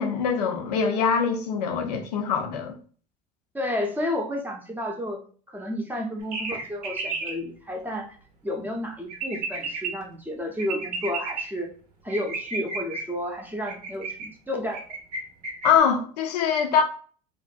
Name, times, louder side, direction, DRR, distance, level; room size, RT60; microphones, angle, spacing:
voice 1, 0.0-2.7 15.6-16.8, left 6 dB, 80° left, 0.5 m, -23 dB
voice 2, 3.5-5.2 5.5-8.1 8.4-11.7 12.0-14.8, left 1 dB, 10° right, 0.6 m, -31 dB
sound 1, 6.3-7.3 9.1-9.9 10.6-11.4 12.1-13.0 13.7-14.3 14.7-15.2 15.4-15.8, right 4 dB, 80° right, 0.7 m, -32 dB
2.5 x 2.1 x 2.5 m
hypercardioid pair, 65°, 20 cm